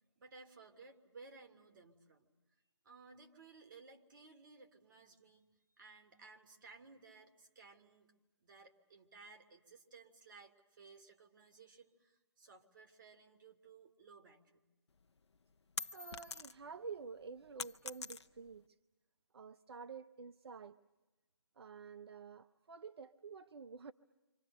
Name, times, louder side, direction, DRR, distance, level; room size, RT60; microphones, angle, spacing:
voice 1, 0.2-2.3 2.8-5.4 5.8-8.1 8.4-14.6, right 4 dB, 50° right, 5 dB, 2.9 m, -59 dB
sound 1, 15.0-16.8 17.1-18.6, left 4 dB, 80° left, 0.9 m, -45 dB
voice 2, 15.9-18.8 19.3-20.8 21.6-23.9, right 5 dB, 65° right, 13 dB, 0.8 m, -50 dB
29.5 x 26.0 x 6.7 m, 1.1 s
hypercardioid pair, 155°, 14 cm